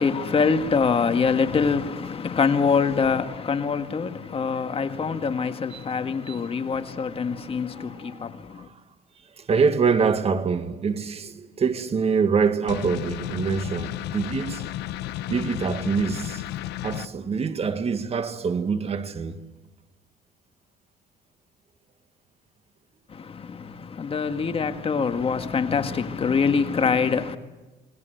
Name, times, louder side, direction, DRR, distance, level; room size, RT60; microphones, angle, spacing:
voice 1, 0.0-8.7 23.1-27.4, left 5 dB, 35° left, 1.8 m, -24 dB
voice 2, 9.4-14.7 15.3-16.4 16.8-19.4, right 5 dB, 35° right, 2.1 m, -25 dB
sound 1, 12.7-17.1, left 14 dB, 85° left, 1.0 m, -33 dB
29.0 x 21.5 x 7.9 m
cardioid pair, 110°, 17 cm